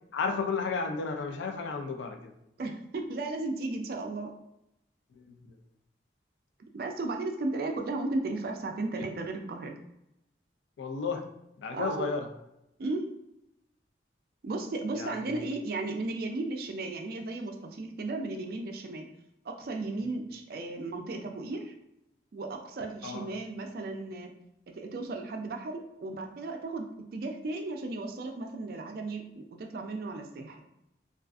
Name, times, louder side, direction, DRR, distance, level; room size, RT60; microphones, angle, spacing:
voice 1, 0.1-2.3 5.1-5.6 10.8-11.3 11.6-12.3 14.9-15.4 23.0-23.3, left 4 dB, 80° left, 5 dB, 0.4 m, -33 dB
voice 2, 2.6-4.3 6.7-9.7 11.7-12.1 12.8-13.2 14.4-19.1 19.4-21.7 22.3-24.3 24.7-26.9 27.1-30.6, right 2 dB, 50° right, 4 dB, 0.3 m, -35 dB
2.4 x 2.3 x 2.3 m, 0.86 s
head